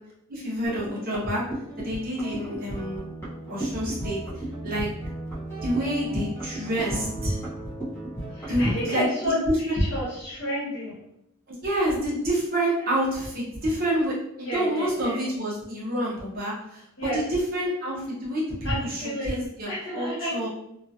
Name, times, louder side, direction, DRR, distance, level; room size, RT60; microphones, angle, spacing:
voice 1, 0.3-1.4 1.8-3.0 3.5-4.9 5.6-7.4 8.5-9.3 11.5-20.5, equal, 40° right, -6 dB, 0.9 m, -28 dB
sound 1, 0.6-8.9, right 1 dB, 10° left, 0.9 m, -35 dB
voice 2, 8.3-11.0 14.4-15.3 17.0-17.2 18.6-20.5, equal, 55° left, -6 dB, 1.2 m, -31 dB
2.9 x 2.4 x 2.6 m, 0.78 s
head